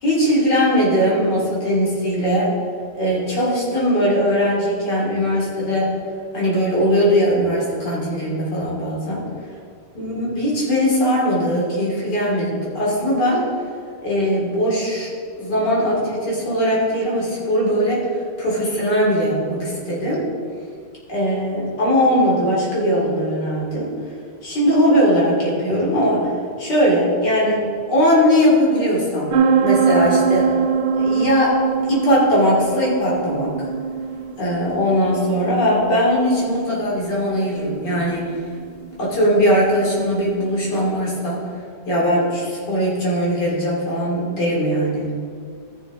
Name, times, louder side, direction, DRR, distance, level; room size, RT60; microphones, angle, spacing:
voice 1, 0.0-2.5 2.9-5.9 6.3-9.2 9.9-13.5 14.0-18.1 18.4-20.2 21.1-23.9 24.4-26.3 26.6-29.3 29.6-30.5 30.9-33.5 34.4-38.3 39.0-41.4 41.9-45.1, equal, 75° left, -5 dB, 3.2 m, -20 dB
sound 1, 29.3-40.8, right 6 dB, 65° right, 0.5 m, -23 dB
14.5 x 6.4 x 3.7 m, 2.2 s
omnidirectional pair, 1.8 m